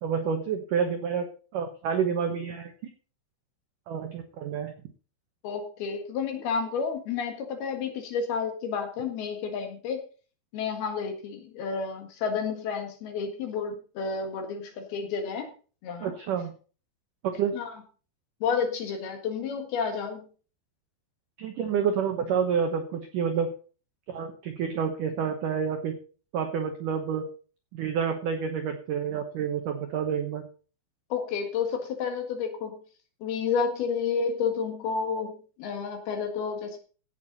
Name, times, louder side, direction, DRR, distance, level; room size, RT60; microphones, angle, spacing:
voice 1, 0.0-1.3 1.5-2.7 3.9-4.7 16.0-16.5 17.2-17.6 21.4-23.5 24.1-26.0 26.3-27.3 27.7-30.5, right 7 dB, 90° right, 6 dB, 1.8 m, -28 dB
voice 2, 5.4-10.0 10.5-15.5 15.8-16.1 17.5-17.7 18.4-20.2 31.1-32.8 33.2-35.3 35.6-36.8, left 6 dB, 60° left, 5 dB, 3.3 m, -30 dB
16.5 x 8.2 x 4.1 m, 0.38 s
omnidirectional pair, 5.6 m